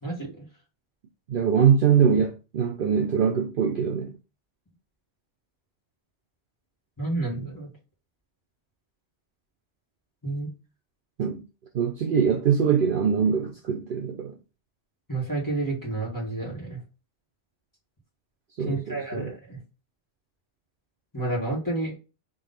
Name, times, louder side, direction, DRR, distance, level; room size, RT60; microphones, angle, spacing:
voice 1, 0.0-0.4 7.0-7.7 10.2-10.5 15.1-16.8 18.7-19.6 21.1-21.9, right 2 dB, 15° left, 1.6 m, -30 dB
voice 2, 1.3-4.1 11.2-11.4 11.7-14.3 18.6-19.3, right 7 dB, 60° right, 0.6 m, -23 dB
3.9 x 2.9 x 3.8 m
omnidirectional pair, 1.2 m